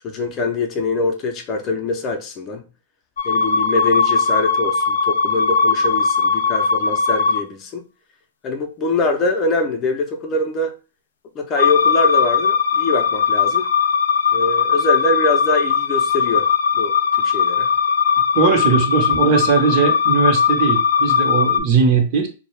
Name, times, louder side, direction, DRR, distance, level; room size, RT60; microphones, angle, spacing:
voice 1, 0.0-2.6 3.2-7.8 8.4-10.7 11.3-13.7 14.3-16.5 16.7-17.7, left 2 dB, 30° left, 0.5 m, -23 dB
sound 1, 3.2-7.4 11.6-21.6, left 6 dB, 85° left, 0.4 m, -18 dB
voice 2, 18.3-22.3, right 5 dB, 40° right, 0.8 m, -18 dB
2.3 x 2.1 x 3.2 m
hypercardioid pair, 135°, 0 cm